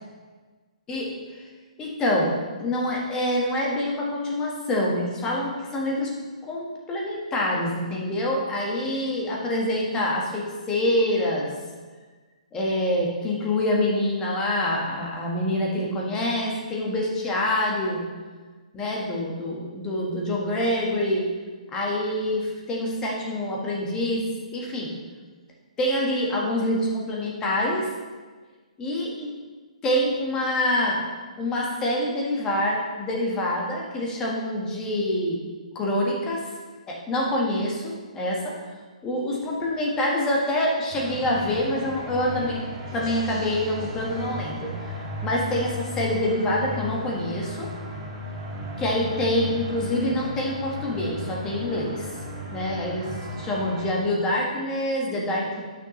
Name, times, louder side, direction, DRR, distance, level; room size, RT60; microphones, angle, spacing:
voice 1, 1.8-6.1 6.4-11.5 12.5-18.1 18.7-21.3 21.7-24.2 24.5-24.9 25.8-27.9 28.8-29.3 29.8-31.0 31.4-35.4 35.7-36.5 36.9-38.5 39.0-42.6 42.9-44.9 45.2-47.7 48.8-52.1 52.4-53.1 53.4-55.6, left 1 dB, 15° left, -2 dB, 1.6 m, -26 dB
sound 1, 40.9-53.9, left 1 dB, 35° right, 2.4 m, -35 dB
10.5 x 6.4 x 3.2 m, 1.4 s
hypercardioid pair, 145°, 4 cm